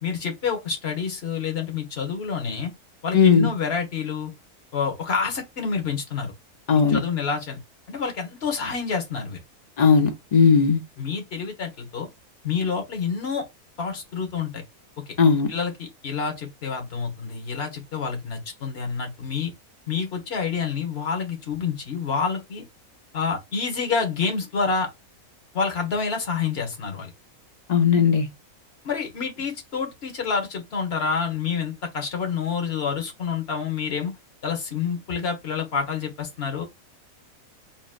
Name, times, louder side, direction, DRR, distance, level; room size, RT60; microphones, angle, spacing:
voice 1, 0.0-2.7 3.0-4.3 4.7-6.3 6.9-7.6 7.9-9.4 11.0-12.1 12.4-13.4 13.8-14.6 15.5-19.5 19.9-22.6 23.1-24.9 25.5-27.1 28.8-34.1 34.4-36.6, left 5 dB, 45° left, 1.4 m, -28 dB
voice 2, 3.1-3.5 6.7-7.0 9.8-10.8 15.2-15.5 27.7-28.3, left 6 dB, 60° left, 0.4 m, -17 dB
3.9 x 3.7 x 2.5 m
omnidirectional pair, 1.6 m